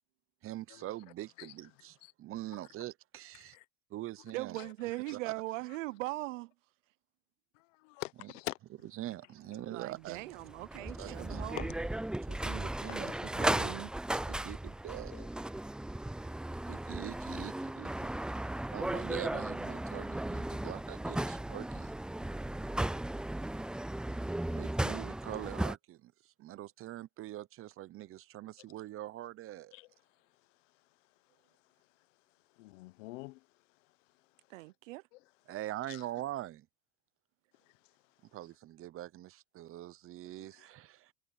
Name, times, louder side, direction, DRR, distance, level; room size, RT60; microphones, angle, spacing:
voice 1, 0.4-3.6 3.9-4.6 5.1-5.3 8.2-8.3 9.0-10.4 11.0-11.4 12.3-13.1 14.3-15.3 16.7-18.1 18.7-21.9 24.5-29.7 35.5-36.7 38.3-41.1, right 14 dB, 35° right, 0.8 m, -43 dB
voice 2, 3.3-3.6 4.6-4.7 5.1-5.2 7.5-8.6 9.5-9.7 11.0-11.1 11.5-11.9 12.9-13.2 15.1-15.3 17.3-17.4 29.7-29.9 32.5-33.5 35.1-35.2 35.9-36.1 37.6-37.9 40.4-40.7, left 22 dB, 80° left, 0.9 m, -46 dB
voice 3, 4.3-6.5 9.7-11.7 13.3-13.9 34.5-35.0, right 20 dB, 90° right, 0.7 m, -40 dB
sound 1, 10.2-25.7, right 1 dB, ahead, 0.4 m, -36 dB
supercardioid pair, 115°, 37 cm